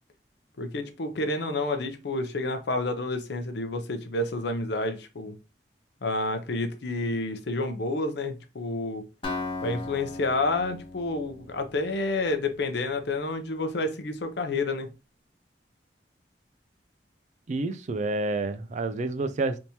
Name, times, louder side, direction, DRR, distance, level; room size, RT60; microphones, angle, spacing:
voice 1, 0.6-5.4 6.0-9.1 9.6-14.9, left 2 dB, 70° left, 0.6 m, -29 dB
Acoustic guitar, 9.2-13.1, left 3 dB, 30° left, 1.0 m, -38 dB
voice 2, 17.5-19.6, right 2 dB, 45° right, 0.4 m, -29 dB
3.5 x 2.9 x 2.7 m
head